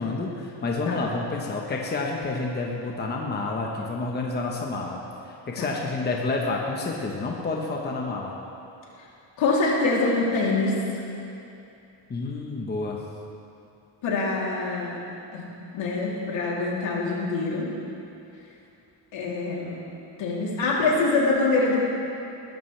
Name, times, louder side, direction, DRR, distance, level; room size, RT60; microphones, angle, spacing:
voice 1, 0.0-5.0 5.2-8.3 12.1-13.0, left 3 dB, 20° left, -1 dB, 1.1 m, -29 dB
voice 2, 9.4-11.0 14.0-15.0 15.3-17.7 19.1-19.8 20.2-21.8, left 3 dB, 70° left, -4 dB, 3.3 m, -25 dB
20.5 x 12.0 x 3.4 m, 2.8 s
cardioid pair, 145°, 47 cm